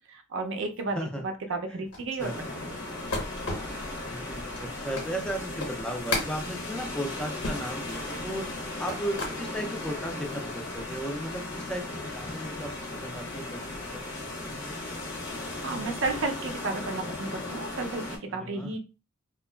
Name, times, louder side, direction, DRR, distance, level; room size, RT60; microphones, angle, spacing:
voice 1, 0.1-1.0 1.2-2.8 8.3-8.5 15.6-18.8, right 3 dB, 60° right, 6 dB, 0.4 m, -33 dB
sound 1, 1.9-9.4 9.9-10.5, left 2 dB, 85° left, 1.1 m, -36 dB
sound 2, 2.2-18.2, left 2 dB, 55° left, 0.7 m, -37 dB
voice 2, 4.0-8.5 8.8-12.7 13.0-14.0 14.4-15.1 18.3-18.7, right 1 dB, 5° left, 2 dB, 0.3 m, -36 dB
2.8 x 2.2 x 2.2 m, 0.31 s
head